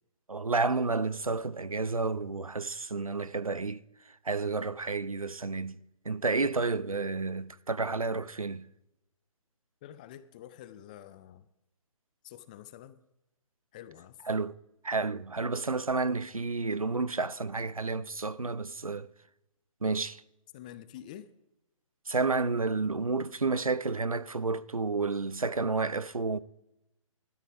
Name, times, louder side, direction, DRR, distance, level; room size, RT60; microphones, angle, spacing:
voice 1, 0.3-3.8 4.3-8.7 14.3-14.5 14.8-19.1 19.8-20.2 22.1-26.4, right 3 dB, 85° right, 0.7 m, -30 dB
voice 2, 9.8-11.5 12.2-13.0 13.7-14.2 20.5-21.3, left 11 dB, 15° left, 0.4 m, -48 dB
16.5 x 13.0 x 3.4 m
figure-of-eight pair, 135°, 17 cm